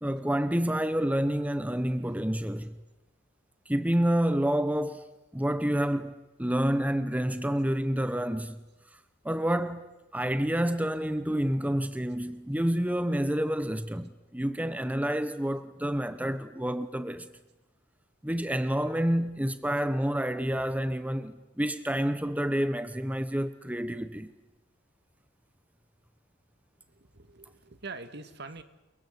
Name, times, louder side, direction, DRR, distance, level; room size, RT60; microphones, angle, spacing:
voice 1, 0.0-2.8 3.7-8.6 9.2-17.3 18.2-24.3, equal, 10° right, 1.0 m, -29 dB
voice 2, 20.6-21.0 26.9-28.6, right 3 dB, 60° right, 2.0 m, -44 dB
29.5 x 22.5 x 8.3 m
head